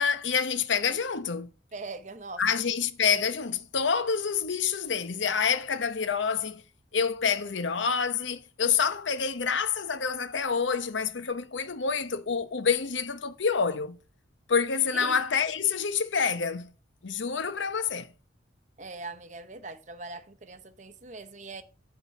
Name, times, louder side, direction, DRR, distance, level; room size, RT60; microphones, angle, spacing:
voice 1, 0.0-1.5 2.4-6.6 6.9-14.0 14.5-16.7 17.0-18.1, left 6 dB, 85° left, 0.8 m, -27 dB
voice 2, 1.7-2.4 14.9-15.2 18.8-21.6, right 3 dB, 40° right, 0.8 m, -41 dB
9.9 x 3.8 x 7.1 m
head